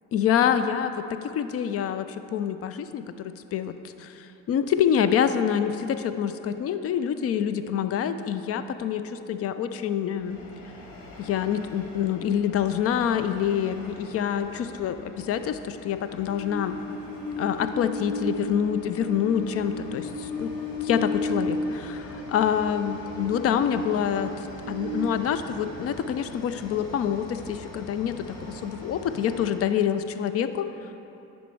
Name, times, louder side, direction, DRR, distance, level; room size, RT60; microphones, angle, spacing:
voice 1, 0.1-10.4 11.2-16.8 17.4-20.5 20.8-30.7, left 8 dB, 35° left, 11 dB, 0.4 m, -26 dB
Train, 10.2-29.7, left 2 dB, 55° left, 1.2 m, -36 dB
10.0 x 4.2 x 4.5 m, 3.0 s
hypercardioid pair, 55°, 41 cm